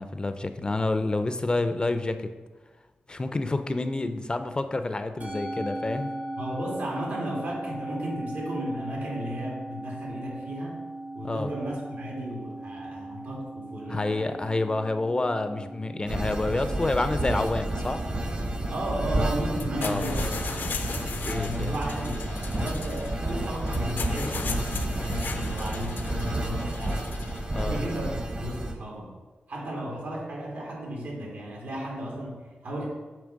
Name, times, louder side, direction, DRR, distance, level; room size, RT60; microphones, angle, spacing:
voice 1, 0.0-2.3 3.1-6.1 11.2-11.5 13.9-18.0 19.8-20.0 21.3-21.7 27.5-27.8, left 2 dB, 25° left, 10 dB, 0.5 m, -28 dB
Musical instrument, 5.2-23.7, right 1 dB, 55° right, 1.7 m, -40 dB
voice 2, 6.4-10.8 11.1-14.4 18.7-20.3 21.3-29.2 29.5-32.9, right 1 dB, 80° right, -2 dB, 2.3 m, -34 dB
sound 1, 16.1-28.7, right 1 dB, 35° right, 0.9 m, -30 dB
sound 2, 19.5-28.1, left 5 dB, 75° left, 0.6 m, -38 dB
8.7 x 3.2 x 6.3 m, 1.3 s
wide cardioid pair, 85°, 3 cm